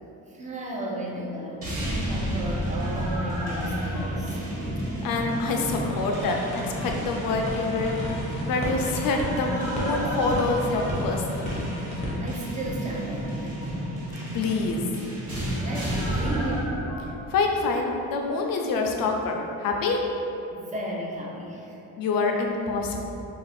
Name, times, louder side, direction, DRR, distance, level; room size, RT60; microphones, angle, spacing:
voice 1, 0.3-4.4 12.2-13.5 15.6-16.9 20.5-21.8, right 1 dB, 20° right, -3 dB, 0.5 m, -34 dB
sound 1, 1.6-16.6, equal, 40° right, 1.2 m, -31 dB
sound 2, 1.9-5.6 5.8-5.9 8.3-12.1 12.3-12.4 14.7-18.5 18.8-18.9, equal, 60° right, 1.0 m, -40 dB
voice 2, 5.0-11.6 14.3-14.8 17.3-20.0 22.0-23.1, left 3 dB, 70° left, 1 dB, 0.5 m, -26 dB
sound 3, 5.6-12.1, left 1 dB, 20° left, 0.6 m, -35 dB
2.5 x 2.4 x 4.0 m, 2.9 s
cardioid pair, 110°, 36 cm